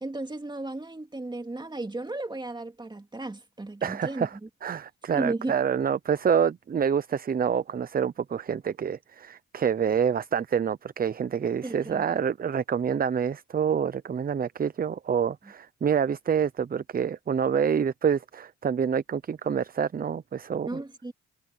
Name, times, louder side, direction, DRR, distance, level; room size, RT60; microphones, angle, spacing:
voice 1, 0.0-4.3 5.1-5.6 11.6-12.1 20.6-21.1, right 2 dB, 15° right, 2.4 m, -34 dB
voice 2, 3.8-20.7, right 7 dB, 30° right, 0.6 m, -27 dB
cardioid pair, 90°, 30 cm